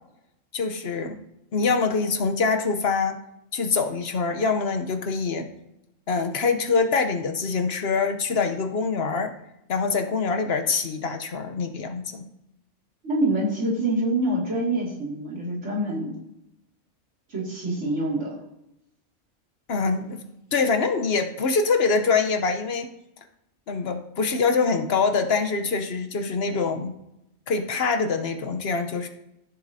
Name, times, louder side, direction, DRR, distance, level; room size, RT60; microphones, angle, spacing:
voice 1, 0.5-1.2 1.5-3.2 3.5-5.5 6.1-9.3 9.7-12.2 19.7-20.2 20.5-22.9 23.7-26.9 27.5-29.1, left 4 dB, 60° left, 6 dB, 1.0 m, -24 dB
voice 2, 13.0-16.1 17.3-18.4, right 1 dB, 70° right, -4 dB, 2.6 m, -26 dB
13.5 x 7.2 x 2.7 m, 0.85 s
omnidirectional pair, 1.3 m